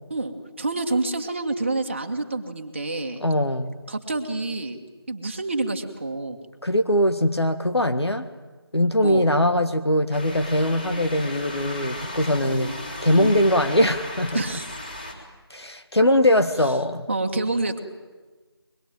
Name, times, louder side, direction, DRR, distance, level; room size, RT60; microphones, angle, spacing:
voice 1, 0.1-3.2 3.9-4.8 5.1-6.4 9.0-9.2 12.4-12.7 13.1-13.3 14.3-14.7 17.1-17.8, right 2 dB, 25° right, 5 dB, 1.8 m, -28 dB
voice 2, 3.2-3.8 6.6-8.3 8.7-12.7 13.0-14.4 15.5-17.1, left 1 dB, 80° left, 7 dB, 1.8 m, -21 dB
sound 1, 10.1-15.1, left 1 dB, 20° left, 3.6 m, -36 dB
23.5 x 22.0 x 9.2 m, 1.3 s
figure-of-eight pair, 170°, 14 cm